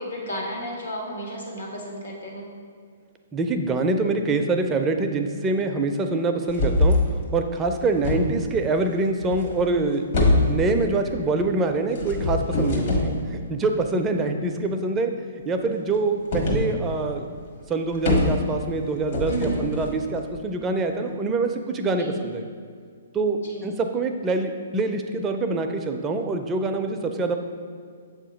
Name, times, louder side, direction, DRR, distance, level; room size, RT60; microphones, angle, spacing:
voice 1, 0.0-2.5 19.3-19.7 22.0-22.2 23.4-23.7, equal, 75° left, -1 dB, 1.4 m, -33 dB
voice 2, 3.3-7.0 7.3-10.1 10.5-15.1 15.4-17.2 17.7-22.4 23.1-27.4, right 3 dB, 20° right, 5 dB, 0.4 m, -25 dB
sound 1, 6.5-7.1 7.6-8.6 9.2-9.8 10.1-10.9 11.9-13.2 16.3-16.7 17.0-17.1 17.4-17.5 17.7-18.7 19.1-20.4, left 2 dB, 55° left, 1.3 m, -23 dB
6.9 x 2.8 x 5.1 m, 2.1 s
hypercardioid pair, 130°, 0 cm